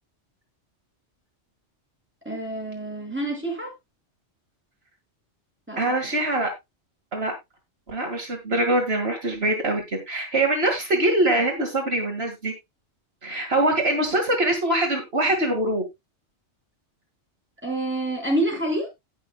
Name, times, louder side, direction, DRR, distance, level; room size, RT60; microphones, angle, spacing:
voice 1, 2.2-3.7 5.7-6.1 17.6-18.9, right 1 dB, 10° right, -1 dB, 5.7 m, -27 dB
voice 2, 5.8-6.5 7.1-7.3 7.9-12.5 13.2-15.8, right 1 dB, 60° right, 2 dB, 2.3 m, -23 dB
18.5 x 6.2 x 2.3 m, 0.21 s
omnidirectional pair, 1.2 m